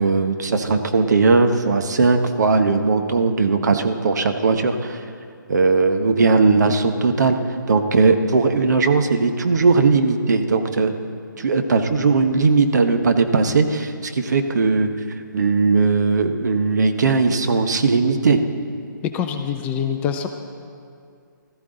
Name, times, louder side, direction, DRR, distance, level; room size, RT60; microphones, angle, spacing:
voice 1, 0.0-5.0 5.5-7.4 7.7-10.9 11.4-14.9 15.3-18.4, right 4 dB, 55° right, 6 dB, 1.0 m, -18 dB
voice 2, 19.0-20.3, left 8 dB, 15° left, 5 dB, 0.4 m, -24 dB
16.0 x 13.5 x 3.9 m, 2.3 s
figure-of-eight pair, 140°, 11 cm